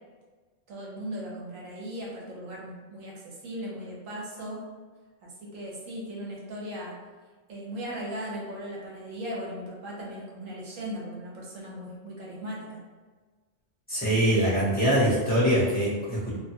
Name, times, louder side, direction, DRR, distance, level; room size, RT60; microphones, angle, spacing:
voice 1, 0.7-4.6 5.2-7.0 7.5-12.8, equal, 90° right, -4 dB, 1.2 m, -38 dB
voice 2, 13.9-16.3, equal, 10° left, -9 dB, 0.8 m, -23 dB
2.6 x 2.2 x 2.8 m, 1.4 s
omnidirectional pair, 1.3 m